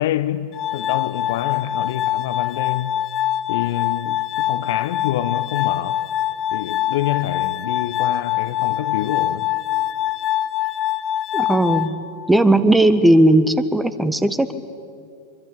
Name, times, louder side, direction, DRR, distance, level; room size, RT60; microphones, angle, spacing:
voice 1, 0.0-2.9 3.5-6.0 6.5-9.5, left 13 dB, 55° left, 0.9 m, -26 dB
Glass, 0.5-12.5, left 12 dB, 30° left, 0.7 m, -24 dB
voice 2, 11.3-11.9 12.3-14.5, right 1 dB, 5° right, 1.5 m, -16 dB
25.5 x 23.5 x 8.8 m
figure-of-eight pair, 90°, 0 cm